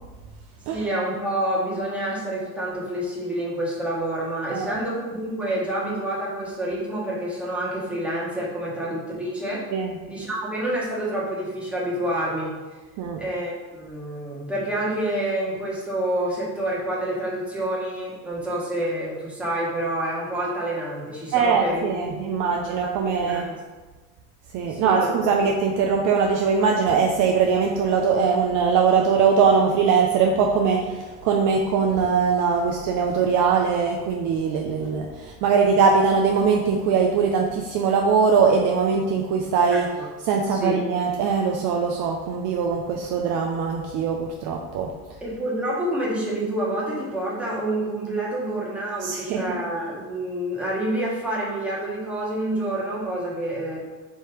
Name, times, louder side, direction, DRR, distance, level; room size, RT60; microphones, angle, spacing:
voice 1, 0.7-9.7 10.1-12.5 13.2-21.8 22.2-22.5 22.8-22.9 23.2-23.5 24.6-25.1 40.0-40.1 40.5-40.8 45.2-53.8, right 1 dB, 5° right, -6 dB, 1.3 m, -28 dB
voice 2, 21.3-23.5 24.5-39.9 40.2-44.9 49.0-49.4, right 5 dB, 45° right, 1 dB, 0.5 m, -21 dB
3.4 x 2.8 x 4.6 m, 1.3 s
supercardioid pair, 105°, 44 cm